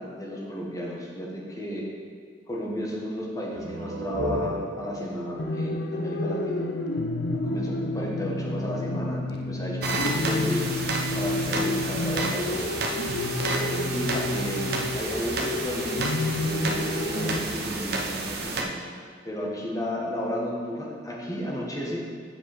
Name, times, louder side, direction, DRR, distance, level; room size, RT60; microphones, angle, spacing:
voice 1, 0.0-1.9 2.5-6.7 7.3-10.6 11.2-12.7 13.4-14.7 14.9-22.0, equal, 20° left, -4 dB, 1.4 m, -33 dB
sound 1, 3.5-7.0, right 2 dB, 80° right, 0.5 m, -35 dB
sound 2, 5.4-17.4, left 2 dB, 60° left, 0.5 m, -30 dB
sound 3, 9.8-18.6, right 3 dB, 60° right, 0.8 m, -31 dB
7.9 x 4.8 x 6.1 m, 2.1 s
head